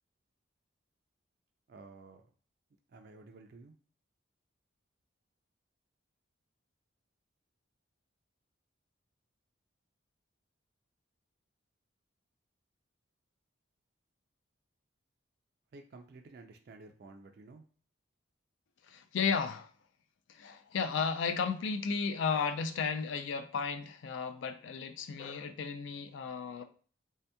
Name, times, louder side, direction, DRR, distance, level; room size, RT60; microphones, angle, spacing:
voice 1, 1.7-2.2 2.9-3.7 15.7-17.6, right 3 dB, 50° right, 4 dB, 0.3 m, -52 dB
voice 2, 18.8-19.7 20.3-26.6, left 5 dB, 70° left, 9 dB, 0.3 m, -34 dB
3.5 x 2.8 x 2.2 m, 0.43 s
head